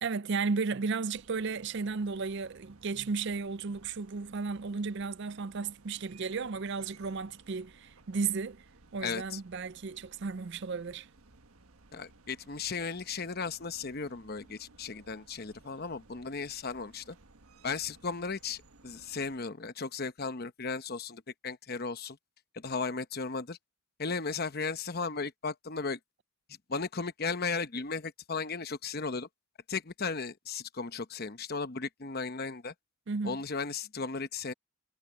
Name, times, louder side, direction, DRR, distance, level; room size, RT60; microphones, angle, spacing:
voice 1, 0.0-8.6 8.9-11.1 33.1-33.4, right 4 dB, 50° right, 0.5 m, -34 dB
sound 1, 1.1-19.4, right 3 dB, 80° right, 1.4 m, -59 dB
voice 2, 9.0-9.4 11.9-17.2 17.6-22.2 22.5-23.6 24.0-26.0 26.7-29.3 29.7-32.7 33.2-34.5, left 4 dB, 45° left, 0.9 m, -35 dB
head